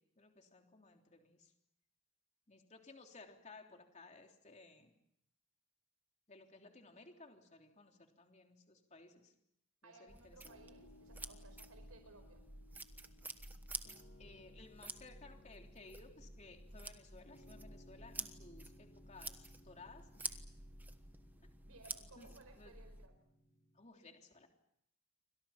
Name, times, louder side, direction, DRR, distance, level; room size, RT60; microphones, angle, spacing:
voice 1, 0.2-1.5 2.5-4.9 6.3-9.3 9.8-10.6 14.2-20.4 22.2-22.3 22.5-22.7 23.7-24.5, left 3 dB, 30° left, 3 dB, 3.3 m, -58 dB
voice 2, 9.8-12.4 21.6-23.1, right 2 dB, 85° right, 6 dB, 5.0 m, -60 dB
sound 1, 10.1-23.1, right 2 dB, 10° right, 1.2 m, -50 dB
Piano, 10.4-23.8, left 1 dB, 50° left, 4.8 m, -64 dB
29.5 x 25.5 x 5.9 m, 0.76 s
head